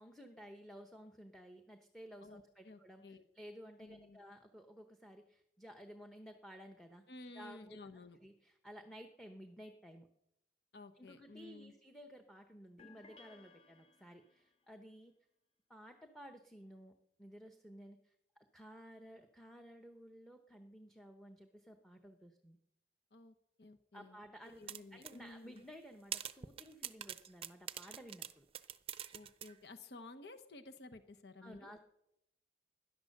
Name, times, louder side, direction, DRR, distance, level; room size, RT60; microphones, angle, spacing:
voice 1, 0.0-7.0 7.3-7.8 8.2-10.1 10.9-15.1 15.7-16.9 17.2-18.1 18.5-22.6 23.9-28.5 31.4-31.8, equal, ahead, 5 dB, 0.9 m, -55 dB
voice 2, 2.2-3.2 3.8-4.2 7.1-8.2 10.7-11.7 23.1-24.2 24.6-25.6 29.1-31.7, left 2 dB, 70° left, 8 dB, 1.0 m, -54 dB
sound 1, 12.8-14.5, left 4 dB, 35° left, 0.8 m, -61 dB
sound 2, 24.7-25.2 25.6-25.7 26.1-29.5, right 9 dB, 30° right, 0.6 m, -44 dB
17.5 x 11.5 x 6.6 m, 0.83 s
head